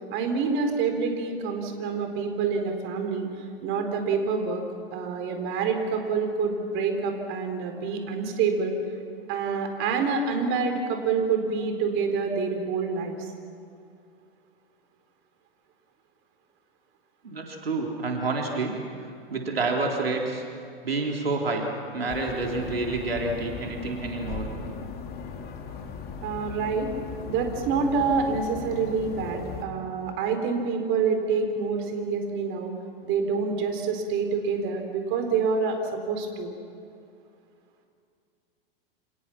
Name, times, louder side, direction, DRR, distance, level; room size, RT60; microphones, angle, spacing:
voice 1, 0.1-3.3 3.6-4.6 4.9-8.8 9.3-13.3 26.2-26.9 27.2-32.7 33.0-36.5, right 5 dB, 45° right, 5 dB, 4.3 m, -27 dB
voice 2, 17.2-18.8 19.3-20.4 20.8-21.6 21.9-24.5, right 3 dB, 85° right, 1 dB, 3.6 m, -28 dB
sound 1, 22.1-29.6, left 5 dB, 35° left, 3.1 m, -37 dB
29.5 x 27.5 x 6.0 m, 2.4 s
hypercardioid pair, 100°, 29 cm